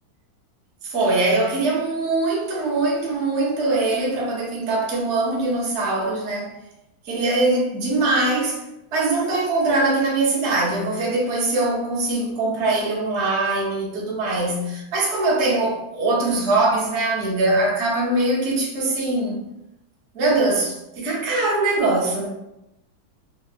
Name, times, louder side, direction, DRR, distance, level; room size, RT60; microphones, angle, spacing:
voice 1, 0.8-6.6 7.0-8.6 8.9-19.4 20.1-22.3, right 2 dB, 85° right, 0.6 m, -22 dB
3.1 x 2.7 x 2.4 m
omnidirectional pair, 2.2 m